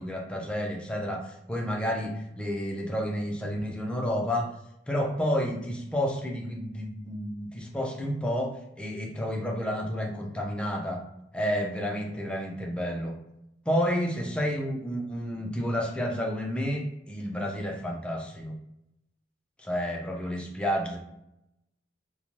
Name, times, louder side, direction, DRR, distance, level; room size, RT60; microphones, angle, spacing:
voice 1, 0.0-4.5 4.9-11.0 11.3-13.1 13.7-18.5 19.6-21.0, equal, 5° left, 0 dB, 0.4 m, -30 dB
2.5 x 2.1 x 3.0 m, 0.85 s
head